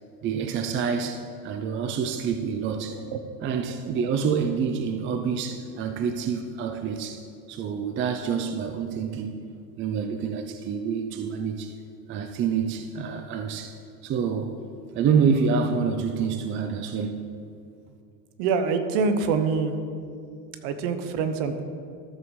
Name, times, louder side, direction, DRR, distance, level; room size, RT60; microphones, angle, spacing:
voice 1, 0.2-3.0 3.4-7.2 7.5-9.4 9.8-11.7 12.1-13.8 14.0-14.6 14.9-17.3, right 6 dB, 25° right, 6 dB, 0.5 m, -27 dB
voice 2, 18.4-19.7 20.6-21.6, right 5 dB, 55° right, 9 dB, 1.0 m, -25 dB
13.5 x 7.0 x 3.2 m, 2.4 s
hypercardioid pair, 100°, 49 cm